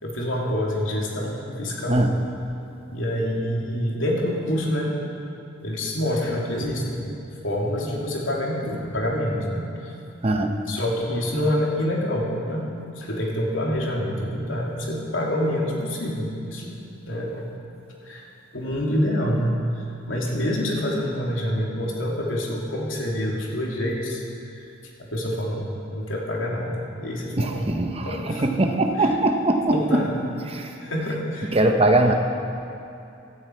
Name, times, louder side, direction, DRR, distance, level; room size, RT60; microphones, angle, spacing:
voice 1, 0.0-2.1 2.9-4.9 5.6-7.1 7.4-9.9 10.7-16.8 17.1-17.4 18.0-18.2 18.5-19.6 20.1-24.2 25.0-27.7 28.0-28.5 29.0-29.1 29.7-30.1 30.8-31.5, equal, 85° left, -2 dB, 2.8 m, -26 dB
voice 2, 1.9-2.2 10.2-10.5 27.4-30.0 30.5-30.7 31.5-32.1, right 1 dB, 30° right, 4 dB, 0.9 m, -21 dB
16.5 x 12.5 x 4.6 m, 2.7 s
head